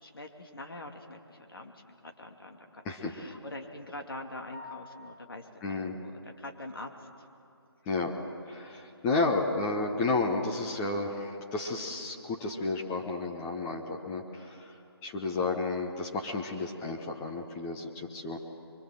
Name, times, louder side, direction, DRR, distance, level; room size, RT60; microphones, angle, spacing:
voice 1, 0.0-1.7 2.0-2.8 3.1-6.1 6.4-6.9, left 2 dB, 60° left, 3 dB, 2.7 m, -44 dB
sound 1, 4.5-5.6, left 3 dB, 30° left, 3.0 m, -48 dB
voice 2, 5.6-6.0 7.9-8.1 8.5-14.8 15.0-18.4, left 3 dB, 10° left, 0 dB, 0.9 m, -32 dB
24.0 x 23.5 x 7.6 m, 2.8 s
figure-of-eight pair, 150°, 14 cm